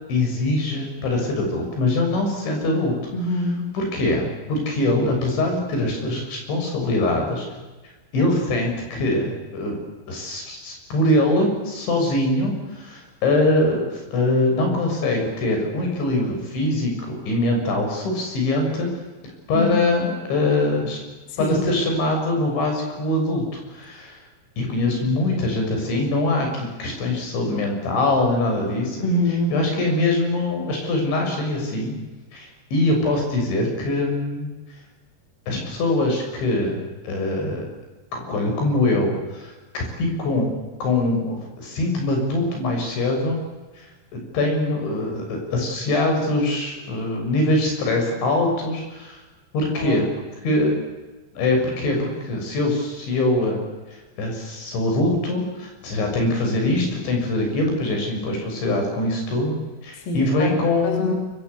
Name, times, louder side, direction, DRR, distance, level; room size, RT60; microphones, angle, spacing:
voice 1, 0.1-3.0 3.7-7.5 8.1-9.8 10.1-18.9 19.5-21.0 21.4-24.2 24.6-29.0 29.5-32.0 32.3-34.5 35.5-37.6 38.1-40.5 40.8-43.4 43.8-43.9 44.1-49.2 49.5-50.0 50.4-50.8 51.4-53.6 54.2-59.6 59.8-61.2, left 2 dB, 70° left, 2 dB, 9.1 m, -23 dB
voice 2, 3.1-3.7 19.6-19.7 21.3-21.6 29.0-29.6 49.8-50.0 60.1-60.5 60.8-61.1, left 2 dB, 50° left, 1 dB, 5.1 m, -24 dB
28.0 x 24.5 x 8.3 m, 1.2 s
omnidirectional pair, 5.6 m